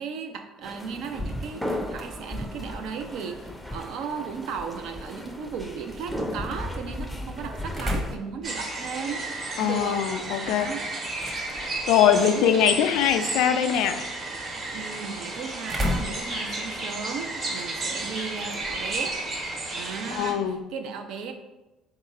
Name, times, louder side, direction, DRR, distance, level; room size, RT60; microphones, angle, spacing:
voice 1, 0.0-9.2 9.5-10.0 10.4-10.9 12.1-12.5 14.7-19.2 19.7-21.3, right 6 dB, 70° right, 5 dB, 0.5 m, -36 dB
sound 1, 0.6-8.2, left 1 dB, ahead, 0.5 m, -35 dB
sound 2, 0.8-20.7, left 1 dB, 20° right, 0.9 m, -39 dB
sound 3, 8.4-20.3, right 2 dB, 45° right, 1.1 m, -33 dB
voice 2, 9.6-10.7 11.9-14.1 20.1-20.6, left 9 dB, 75° left, 8 dB, 0.3 m, -22 dB
3.7 x 2.4 x 4.1 m, 1.0 s
supercardioid pair, 85°, 0 cm